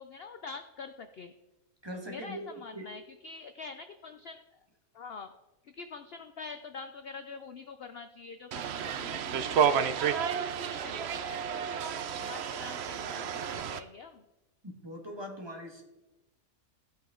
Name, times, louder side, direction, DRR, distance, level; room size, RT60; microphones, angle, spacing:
voice 1, 0.0-1.3 2.1-4.4 4.9-5.3 5.7-11.7 12.1-14.2, left 4 dB, 55° left, 9 dB, 0.7 m, -45 dB
voice 2, 1.8-2.8 14.6-15.8, equal, 20° right, 1 dB, 1.7 m, -41 dB
sound 1, 8.5-13.8, right 7 dB, 60° right, 0.8 m, -31 dB
15.0 x 8.4 x 3.8 m, 1.0 s
omnidirectional pair, 1.5 m